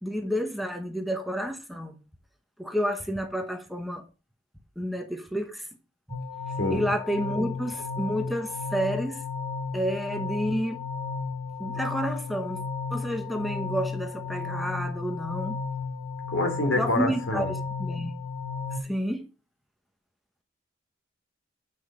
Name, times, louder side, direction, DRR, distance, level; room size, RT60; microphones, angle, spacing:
voice 1, 0.0-2.0 2.6-4.0 4.8-5.7 6.7-9.2 9.7-10.8 11.6-12.6 12.9-15.6 16.8-18.1 18.8-19.3, equal, ahead, 1.1 m, -30 dB
sound 1, 6.1-18.8, left 4 dB, 25° left, 3.1 m, -34 dB
voice 2, 16.3-17.5, left 1 dB, 90° left, 3.2 m, -26 dB
9.0 x 6.2 x 4.9 m
head